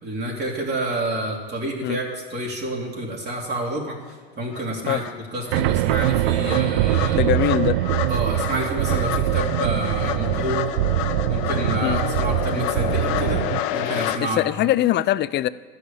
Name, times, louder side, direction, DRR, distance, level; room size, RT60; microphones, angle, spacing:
voice 1, 0.0-5.0 5.3-7.2 8.1-10.6 11.3-13.4 13.7-14.4, right 1 dB, 35° right, -3 dB, 2.9 m, -28 dB
sound 1, 4.1-4.2 4.5-14.2, left 12 dB, 60° left, 0.8 m, -29 dB
sound 2, 5.5-13.6, right 16 dB, 70° right, 0.5 m, -23 dB
voice 2, 7.1-7.8 11.8-12.0 14.2-15.5, left 13 dB, 35° left, 17 dB, 0.5 m, -22 dB
13.0 x 6.6 x 8.6 m, 1.3 s
hypercardioid pair, 85°, 31 cm